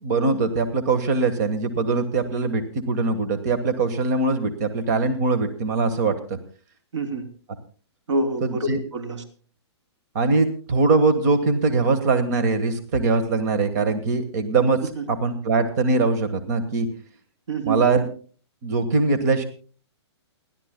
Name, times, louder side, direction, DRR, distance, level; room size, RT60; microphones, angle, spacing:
voice 1, 0.0-6.2 8.4-8.8 10.1-14.8 15.1-16.9 17.6-18.1 18.6-19.4, right 3 dB, 40° right, 8 dB, 1.4 m, -22 dB
voice 2, 6.9-7.3 8.1-9.2 14.9-15.1 17.5-17.8, right 2 dB, 90° right, 6 dB, 3.4 m, -26 dB
29.0 x 12.0 x 2.2 m, 0.39 s
hypercardioid pair, 170°, 15 cm